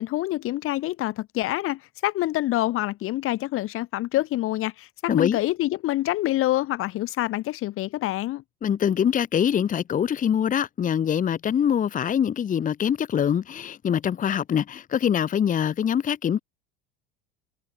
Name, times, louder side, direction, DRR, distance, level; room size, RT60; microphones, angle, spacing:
voice 1, 0.0-8.4, left 16 dB, 50° left, 1.2 m, -26 dB
voice 2, 8.6-16.4, left 8 dB, 30° left, 1.1 m, -24 dB
hypercardioid pair, 95°, 29 cm